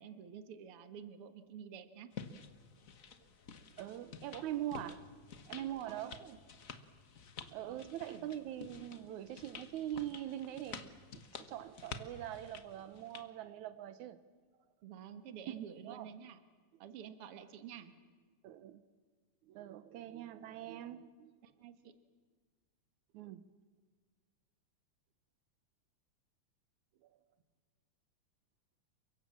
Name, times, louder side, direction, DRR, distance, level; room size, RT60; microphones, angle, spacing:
voice 1, 0.0-2.1 5.8-6.4 7.6-8.3 14.8-16.4 16.8-17.9 21.4-21.9, right 8 dB, 55° right, 9 dB, 2.2 m, -50 dB
sound 1, 2.1-13.3, left 5 dB, 45° left, 1.0 m, -51 dB
voice 2, 3.8-5.1 5.5-6.4 7.5-14.2 15.9-16.1 18.4-18.8 19.5-21.3 23.1-23.4 27.0-27.2, right 12 dB, 85° right, 13 dB, 2.3 m, -43 dB
29.5 x 24.0 x 7.4 m, 1.5 s
omnidirectional pair, 3.3 m